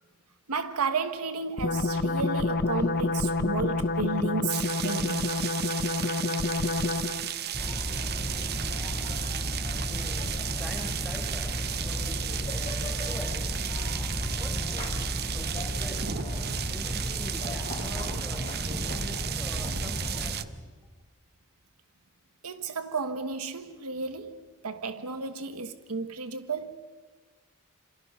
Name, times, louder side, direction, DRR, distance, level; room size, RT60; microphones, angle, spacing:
voice 1, 0.5-5.4 22.4-26.8, right 4 dB, 90° right, 1.3 m, -33 dB
sound 1, 1.6-7.3, left 3 dB, 45° left, 0.9 m, -28 dB
rain thunder, 4.5-20.4, right 10 dB, 45° right, 0.8 m, -35 dB
sound 2, 7.5-20.3, equal, 20° left, 4.6 m, -33 dB
voice 2, 9.8-13.7 14.2-16.2 16.5-20.7, left 1 dB, ahead, 4.6 m, -45 dB
29.0 x 27.5 x 5.5 m
head